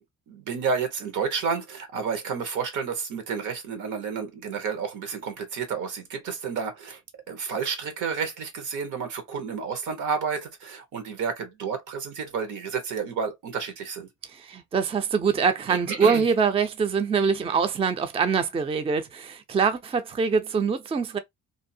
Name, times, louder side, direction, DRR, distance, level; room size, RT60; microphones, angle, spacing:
voice 1, 0.3-7.0 7.3-14.1 15.7-16.3, right 6 dB, 80° right, 1.0 m, -30 dB
voice 2, 14.3-21.2, right 5 dB, 20° right, 0.4 m, -24 dB
2.6 x 2.0 x 2.6 m
cardioid pair, 90°, 30 cm